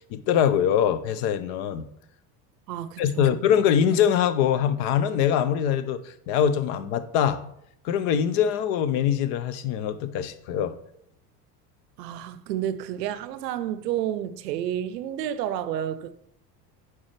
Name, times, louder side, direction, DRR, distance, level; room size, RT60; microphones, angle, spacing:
voice 1, 0.1-1.9 3.0-6.0 6.3-7.4 7.8-10.7, left 9 dB, 60° left, 0.6 m, -23 dB
voice 2, 2.7-3.4 12.0-16.1, right 11 dB, 90° right, 0.6 m, -30 dB
7.2 x 4.5 x 3.2 m
hypercardioid pair, 90°, 48 cm